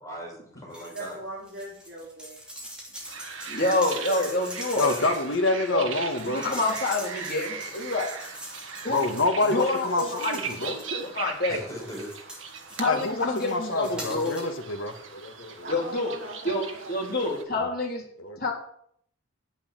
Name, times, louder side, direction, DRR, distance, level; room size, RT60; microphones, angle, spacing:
voice 1, 0.0-1.2 6.5-7.1 7.5-7.8 11.5-12.1, equal, 15° left, -4 dB, 6.0 m, -41 dB
sound 1, 0.7-1.1 1.4-11.2 11.7-14.6 14.9-15.0, equal, 5° right, 3.1 m, -43 dB
voice 2, 0.9-2.4 10.9-11.1 15.6-17.1, right 1 dB, 55° right, -4 dB, 3.1 m, -39 dB
sound 2, 3.1-17.4, right 6 dB, 75° right, 1.6 m, -39 dB
voice 3, 3.5-4.9 5.7-5.9 6.2-8.1 8.8-9.0 9.4-10.7 11.2-11.6 12.8-14.3 15.7-16.1 16.4-18.0 18.4-18.5, left 2 dB, 45° left, -1 dB, 3.6 m, -27 dB
voice 4, 4.8-6.4 8.9-10.8 12.8-15.7 17.5-17.7 18.2-18.5, left 2 dB, 75° left, 5 dB, 1.5 m, -27 dB
10.0 x 8.6 x 7.6 m, 0.65 s
head